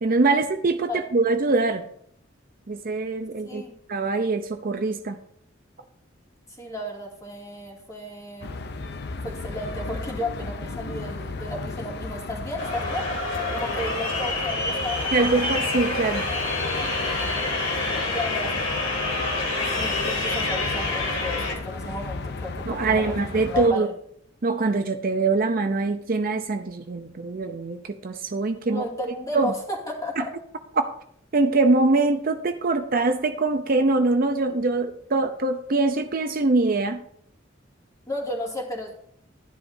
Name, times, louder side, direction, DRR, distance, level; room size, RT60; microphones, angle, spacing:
voice 1, 0.0-1.9 2.7-3.6 3.9-5.2 15.1-16.2 22.7-23.9 24.4-28.8 29.3-29.5 30.2-30.3 30.8-30.9 31.3-37.0, right 3 dB, 45° right, 7 dB, 0.6 m, -23 dB
voice 2, 6.6-8.5 9.2-13.1 13.5-15.3 17.3-23.1 23.5-23.9 28.7-30.3 38.1-38.9, left 1 dB, 15° left, -2 dB, 2.4 m, -34 dB
sound 1, 8.4-23.7, left 3 dB, 55° left, 0.6 m, -35 dB
sound 2, 12.6-21.5, left 2 dB, 85° left, 2.3 m, -27 dB
12.5 x 10.5 x 2.7 m, 0.67 s
head